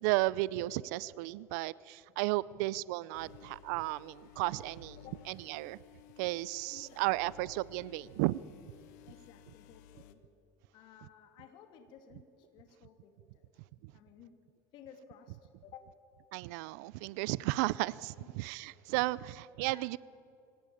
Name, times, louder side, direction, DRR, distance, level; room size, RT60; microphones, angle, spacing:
voice 1, 0.0-5.0 5.3-5.8 6.2-8.4 16.3-20.0, right 19 dB, 75° right, 21 dB, 0.5 m, -34 dB
sound 1, 3.1-10.1, left 9 dB, 80° left, 1.4 m, -56 dB
voice 2, 6.7-7.3 9.0-10.2 10.7-13.5 13.9-14.4 14.7-16.0 18.2-18.3 19.6-19.9, left 8 dB, 55° left, 7 dB, 2.7 m, -56 dB
24.5 x 17.5 x 8.6 m, 2.6 s
supercardioid pair, 135°, 9 cm